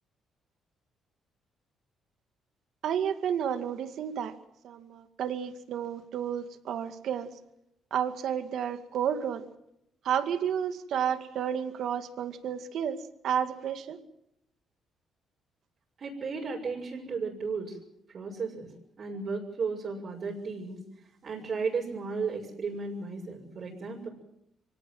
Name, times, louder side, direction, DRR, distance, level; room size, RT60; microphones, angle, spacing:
voice 1, 2.8-4.4 4.6-7.3 7.9-9.4 10.0-14.0, right 8 dB, 75° right, 10 dB, 2.1 m, -31 dB
voice 2, 16.0-17.8 18.1-20.8 21.2-24.1, right 4 dB, 50° right, -3 dB, 6.4 m, -34 dB
24.5 x 18.5 x 7.8 m, 0.80 s
cardioid pair, 90°, 0 cm